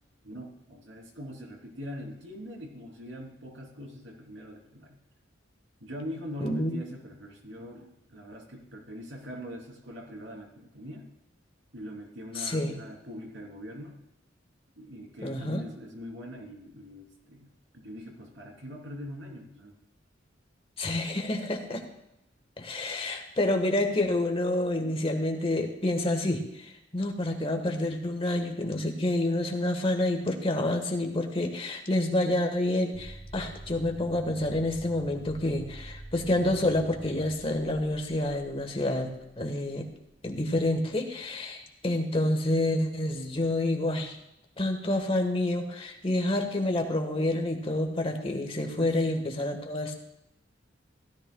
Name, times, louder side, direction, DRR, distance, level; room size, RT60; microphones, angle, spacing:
voice 1, 0.2-5.0 5.8-11.1 11.7-14.0 14.7-19.8 48.8-49.4, equal, 80° right, 0 dB, 3.2 m, -42 dB
voice 2, 6.4-6.8 12.4-12.8 15.2-15.6 20.8-21.8 22.6-39.9 40.2-44.2 44.6-49.9, left 1 dB, 30° left, 4 dB, 1.4 m, -28 dB
sound 1, 32.9-40.6, right 1 dB, 15° right, 1.9 m, -47 dB
16.5 x 13.0 x 2.3 m, 0.86 s
head